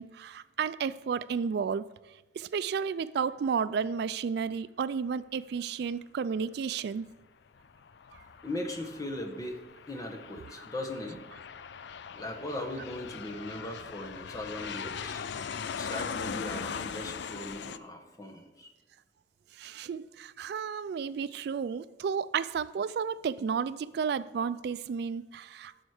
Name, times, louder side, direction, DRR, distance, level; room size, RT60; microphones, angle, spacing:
voice 1, 0.0-1.8 2.4-7.1 15.4-15.5 19.5-25.8, right 6 dB, 65° right, 16 dB, 0.3 m, -32 dB
Aircraft, 7.6-17.8, left 6 dB, 70° left, 0.4 m, -40 dB
voice 2, 8.4-9.6 9.9-11.2 12.1-15.2 15.7-18.7, left 1 dB, 20° left, 3 dB, 1.2 m, -38 dB
12.5 x 6.4 x 4.9 m, 1.1 s
head